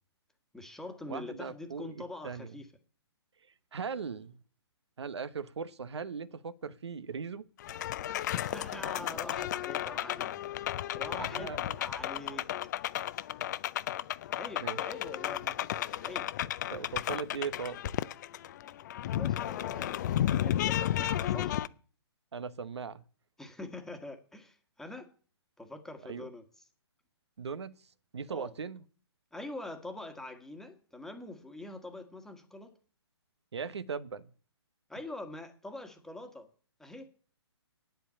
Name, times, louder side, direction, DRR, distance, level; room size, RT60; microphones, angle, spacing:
voice 1, 0.5-2.7 8.3-11.5 11.8-12.4 14.3-16.3 19.2-21.6 23.4-25.1 25.6-26.4 28.3-28.5 29.3-32.7 34.9-36.5 36.8-37.1, left 2 dB, 5° left, 1.5 m, -44 dB
voice 2, 1.1-2.6 3.7-4.4 5.0-7.4 11.1-11.8 14.6-14.9 16.7-17.8 22.3-23.1 26.1-26.3 27.4-27.8 28.1-28.8 33.5-34.3, right 6 dB, 75° right, 1.0 m, -39 dB
sound 1, 7.6-21.7, left 12 dB, 40° left, 0.6 m, -33 dB
9.0 x 8.0 x 8.6 m
hypercardioid pair, 140°, 14 cm